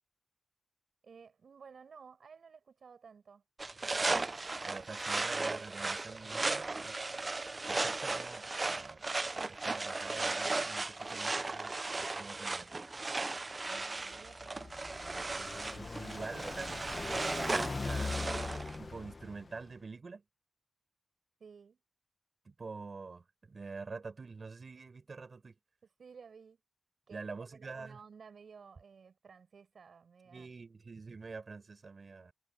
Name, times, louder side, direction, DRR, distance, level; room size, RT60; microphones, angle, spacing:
voice 1, 1.0-3.4 13.7-14.8 21.4-21.8 26.0-26.6 27.1-30.5, right 6 dB, 80° right, 5.0 m, -55 dB
sound 1, 3.6-18.8, right 3 dB, 40° right, 0.5 m, -36 dB
voice 2, 4.6-7.0 7.7-9.0 9.5-12.7 15.7-18.2 18.8-20.2 22.4-25.6 27.1-28.0 30.3-32.3, right 4 dB, 60° right, 4.6 m, -46 dB
Car passing by, 14.1-19.7, left 3 dB, 45° left, 1.3 m, -41 dB
cardioid pair, 55°, 0 cm